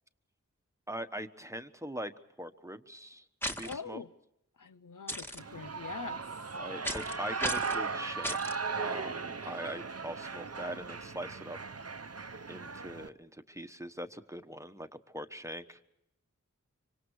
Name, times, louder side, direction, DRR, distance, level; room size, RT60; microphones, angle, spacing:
voice 1, 0.9-2.1 2.4-4.0 6.6-11.6 12.5-14.9 15.1-15.8, equal, 10° right, 1.2 m, -42 dB
sound 1, 3.4-3.7 5.1-5.4 6.8-7.1 7.4-7.8 8.2-8.6, equal, 5° left, 1.7 m, -35 dB
voice 2, 3.6-4.1 4.6-6.2, left 5 dB, 75° left, 0.7 m, -43 dB
Shout / Cheering, 5.4-13.1, right 4 dB, 50° right, 0.8 m, -37 dB
25.5 x 25.0 x 4.8 m
wide cardioid pair, 40°, 31 cm